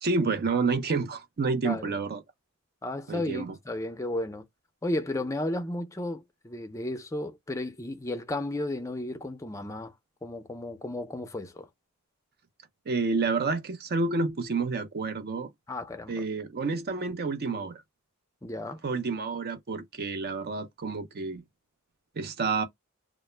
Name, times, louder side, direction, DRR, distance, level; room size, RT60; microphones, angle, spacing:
voice 1, 0.0-2.2 3.1-3.5 12.9-15.5 16.1-17.8 18.8-21.4 22.2-22.6, right 4 dB, 45° right, 0.5 m, -29 dB
voice 2, 1.6-2.0 2.8-4.4 4.8-9.9 10.2-11.7 15.7-16.3 18.4-18.8, left 1 dB, 15° left, 0.4 m, -33 dB
2.0 x 2.0 x 3.1 m
head